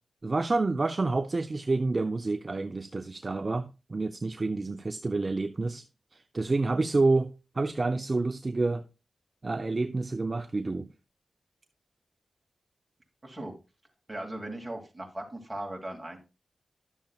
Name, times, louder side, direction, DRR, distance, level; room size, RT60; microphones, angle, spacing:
voice 1, 0.2-5.8 6.1-8.8 9.4-10.9, right 3 dB, 35° right, 0.5 m, -28 dB
voice 2, 13.2-13.5 14.1-16.2, right 1 dB, 15° right, 2.5 m, -38 dB
11.5 x 7.1 x 2.3 m
wide cardioid pair, 80°, 0 cm